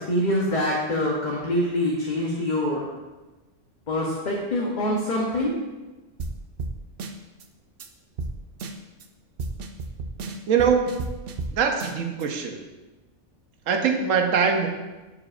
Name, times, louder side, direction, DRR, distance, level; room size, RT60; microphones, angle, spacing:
voice 1, 0.1-2.9 3.9-5.5, left 1 dB, 40° left, -3 dB, 0.9 m, -25 dB
sound 1, 6.2-6.3 6.6-6.7 7.0-7.4 7.8-7.9 8.2-8.3 8.6-9.0 9.4-11.5 11.8-12.2, right 3 dB, 60° right, 0.7 m, -32 dB
voice 2, 10.5-11.1 11.5-12.6 13.7-14.7, right 6 dB, 80° right, 4 dB, 1.2 m, -22 dB
11.5 x 4.9 x 2.5 m, 1.2 s
omnidirectional pair, 1.3 m